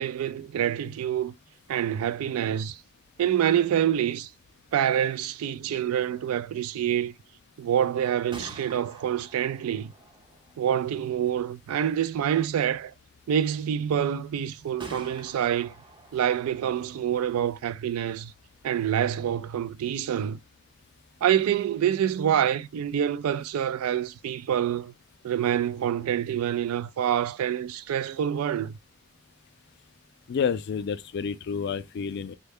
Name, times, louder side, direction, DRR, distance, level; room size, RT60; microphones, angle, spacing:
voice 1, 0.0-1.4 1.7-2.8 3.2-4.3 4.7-7.1 7.6-9.9 10.6-12.9 13.3-15.7 16.1-18.3 18.6-20.4 21.2-24.9 25.2-28.7, right 9 dB, 80° right, 0.3 m, -26 dB
Gunshot gunfire, 8.2-21.9, right 1 dB, 20° right, 0.5 m, -51 dB
voice 2, 30.3-32.3, left 6 dB, 50° left, 0.3 m, -29 dB
3.2 x 2.2 x 3.4 m
head